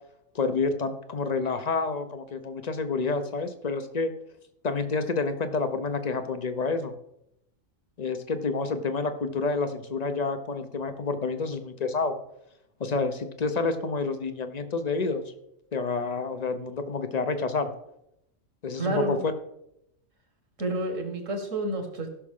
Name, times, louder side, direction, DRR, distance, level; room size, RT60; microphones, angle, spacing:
voice 1, 0.3-4.1 4.6-7.0 8.0-12.2 12.8-15.2 15.7-17.7 18.6-19.3, left 4 dB, 35° left, 9 dB, 0.7 m, -29 dB
voice 2, 18.8-19.2 20.6-22.1, right 2 dB, 65° right, 4 dB, 2.1 m, -29 dB
16.0 x 6.2 x 3.7 m, 0.79 s
omnidirectional pair, 1.4 m